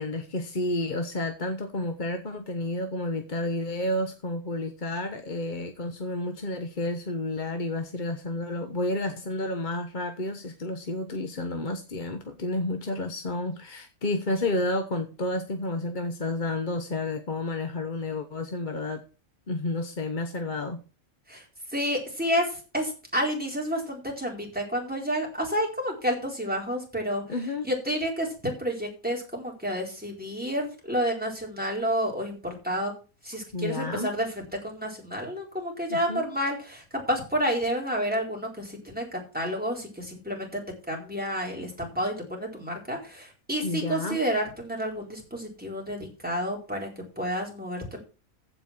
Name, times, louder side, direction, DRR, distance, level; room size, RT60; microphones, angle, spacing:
voice 1, 0.0-19.0 19.5-20.8 27.3-27.7 33.5-34.1 35.9-36.3 43.6-44.2, left 2 dB, 40° left, 1.1 m, -31 dB
voice 2, 21.7-27.2 27.6-32.9 33.2-40.6 40.9-46.9 47.2-48.0, equal, 5° right, 4.3 m, -30 dB
15.0 x 5.3 x 5.9 m
omnidirectional pair, 1.5 m